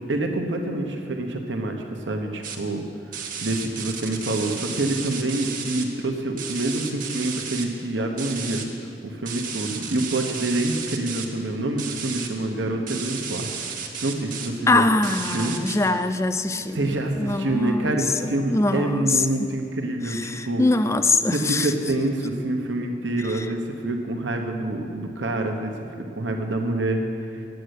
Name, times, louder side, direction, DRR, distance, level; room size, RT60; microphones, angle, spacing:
voice 1, 0.1-2.8 3.4-8.6 9.0-13.5 14.0-14.8 15.3-15.5 16.6-20.6 21.3-27.0, right 2 dB, 90° right, 3 dB, 1.1 m, -26 dB
sound 1, 2.4-2.5 3.1-5.8 6.4-7.6 8.2-8.6 9.2-11.2 11.8-12.3 12.9-14.5 15.0-15.8, right 6 dB, 50° right, 1.2 m, -33 dB
voice 2, 14.7-19.2 20.1-21.7 23.4-23.5, left 2 dB, 15° left, 9 dB, 0.4 m, -23 dB
9.2 x 7.9 x 8.2 m, 2.6 s
head